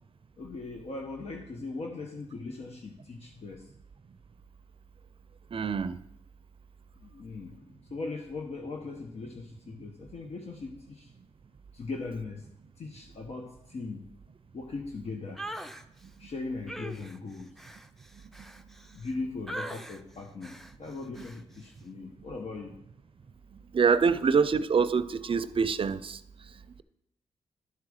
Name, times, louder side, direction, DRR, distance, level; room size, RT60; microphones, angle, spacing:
voice 1, 0.4-3.7 7.0-11.1 11.7-12.5 12.8-14.1 14.5-15.4 16.2-17.5 18.9-22.8, left 3 dB, 65° left, 2 dB, 1.1 m, -39 dB
voice 2, 5.5-6.0 23.7-26.2, right 5 dB, 50° right, 14 dB, 0.5 m, -25 dB
sound 1, 15.4-15.8 16.7-19.1 19.5-20.0 20.4-20.7 21.1-21.4, right 1 dB, ahead, 0.6 m, -41 dB
11.0 x 4.7 x 6.4 m, 0.80 s
cardioid pair, 65°, 12 cm